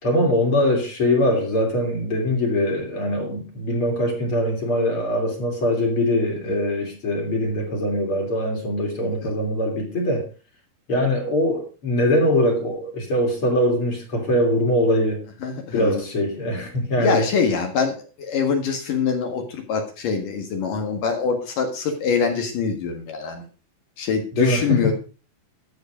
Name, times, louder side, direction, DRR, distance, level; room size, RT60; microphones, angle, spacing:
voice 1, 0.0-10.3 10.9-15.3 15.7-17.3 24.4-24.9, left 1 dB, 35° left, 3.6 m, -22 dB
voice 2, 15.4-16.0 17.0-23.4 24.0-24.9, left 5 dB, 65° left, 3.2 m, -24 dB
13.0 x 7.9 x 5.1 m
omnidirectional pair, 4.4 m